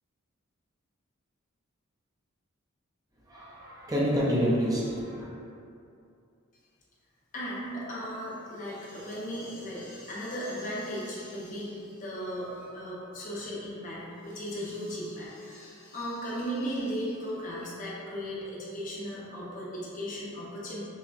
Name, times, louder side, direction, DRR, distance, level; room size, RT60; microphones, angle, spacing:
voice 1, 3.3-5.3, equal, 20° right, -6 dB, 0.5 m, -28 dB
voice 2, 7.3-20.8, equal, 40° left, -6 dB, 0.7 m, -36 dB
5.5 x 2.1 x 2.5 m, 2.6 s
head